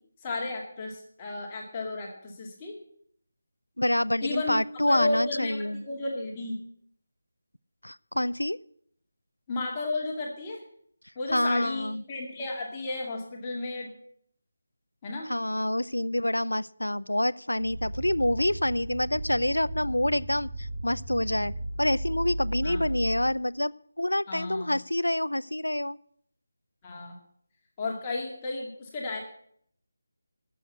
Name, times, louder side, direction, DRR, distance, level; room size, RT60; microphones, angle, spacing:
voice 1, 0.2-2.8 4.2-4.6 4.9-6.6 9.5-10.6 11.2-13.9 15.0-15.3 22.6-22.8 24.3-24.7 26.8-27.2 27.8-29.2, left 2 dB, 20° left, -1 dB, 2.1 m, -33 dB
voice 2, 3.8-5.8 7.8-8.6 11.3-12.0 15.3-21.5 21.8-26.0, left 1 dB, 85° left, 20 dB, 0.4 m, -27 dB
sound 1, 17.6-23.3, right 1 dB, 10° right, 2.7 m, -35 dB
13.0 x 7.1 x 8.2 m, 0.67 s
figure-of-eight pair, 160°, 0 cm